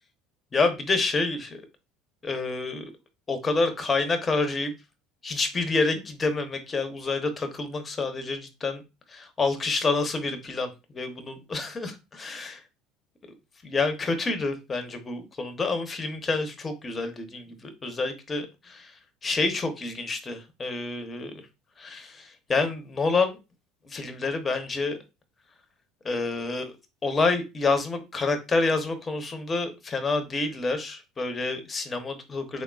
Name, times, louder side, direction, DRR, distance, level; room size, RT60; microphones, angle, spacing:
voice 1, 0.5-1.6 2.2-2.9 3.3-4.7 5.2-8.8 9.1-12.6 13.6-18.9 19.2-21.3 21.8-23.4 23.9-25.0 26.0-26.8 27.0-32.6, left 3 dB, 25° left, 0.8 m, -28 dB
3.7 x 3.6 x 2.3 m
supercardioid pair, 100°, 0 cm